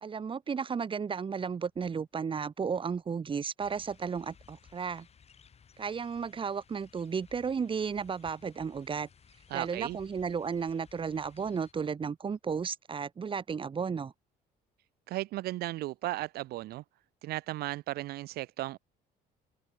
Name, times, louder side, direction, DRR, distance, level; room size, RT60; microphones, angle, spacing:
voice 1, 0.0-5.1 5.8-9.1 9.5-14.1, right 6 dB, 30° right, 1.4 m, -34 dB
sound 1, 3.6-11.7, left 7 dB, 40° left, 4.5 m, -59 dB
voice 2, 9.5-10.0 15.1-16.8 17.2-18.8, right 17 dB, 70° right, 0.5 m, -35 dB
cardioid pair, 110°, 17 cm